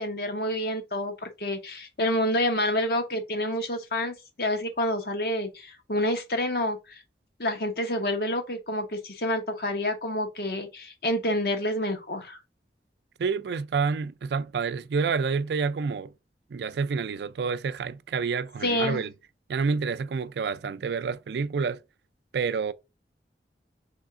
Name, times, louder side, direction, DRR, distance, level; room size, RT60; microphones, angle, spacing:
voice 1, 0.0-7.0 7.4-12.4 18.6-19.0, left 1 dB, 60° left, 1.0 m, -28 dB
voice 2, 13.2-16.1 16.5-19.1 19.5-21.8 22.3-22.7, right 5 dB, 70° right, 0.4 m, -28 dB
3.5 x 3.3 x 3.6 m
head